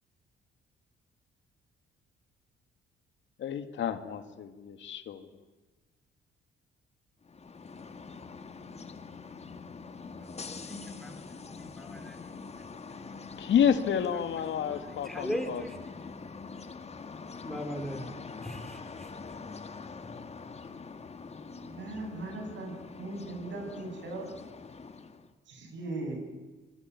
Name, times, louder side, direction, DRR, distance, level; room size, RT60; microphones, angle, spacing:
voice 1, 3.4-5.3 13.4-15.6, left 8 dB, 70° left, 9 dB, 2.1 m, -29 dB
sound 1, 7.2-25.3, left 4 dB, 30° left, 2.0 m, -44 dB
voice 2, 10.2-12.3 13.1-13.2 14.6-15.8 17.4-18.1 18.4-19.1, equal, ahead, 5 dB, 5.2 m, -40 dB
voice 3, 21.5-22.7 23.0-24.3 25.5-26.2, right 2 dB, 70° right, 4 dB, 8.0 m, -38 dB
26.5 x 22.0 x 9.7 m, 1.2 s
cardioid pair, 90°, 20 cm